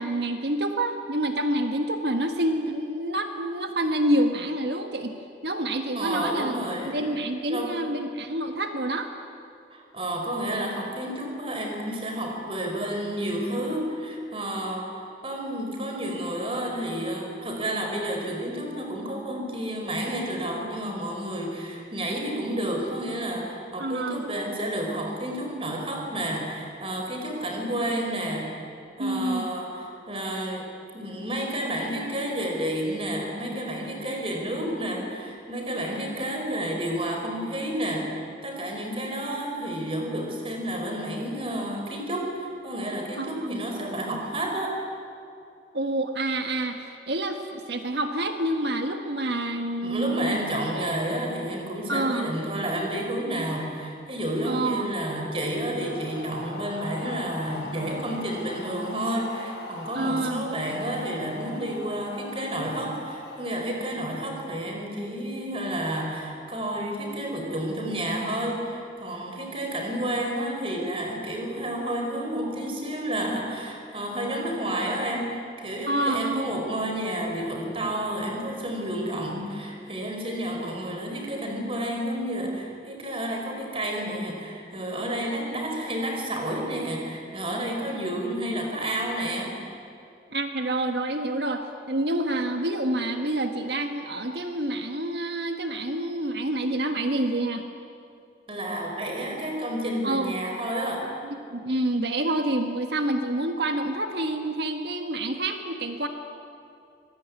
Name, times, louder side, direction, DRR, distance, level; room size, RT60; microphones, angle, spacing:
voice 1, 0.0-5.1 5.4-6.5 6.8-9.1 23.8-24.2 29.0-29.5 43.2-43.6 45.7-50.4 51.9-52.3 54.4-54.9 59.9-60.5 75.9-76.4 90.3-97.6 100.0-100.3 101.5-106.1, right 1 dB, 65° right, 6 dB, 1.6 m, -27 dB
voice 2, 5.9-7.0 7.5-7.8 9.7-28.7 29.0-30.7 30.9-38.2 38.4-44.8 49.8-89.6 98.5-101.1, right 1 dB, 30° right, 1 dB, 4.8 m, -30 dB
sound 1, 55.6-64.7, left 2 dB, 85° left, 5.3 m, -41 dB
25.5 x 20.5 x 9.7 m, 2.5 s
head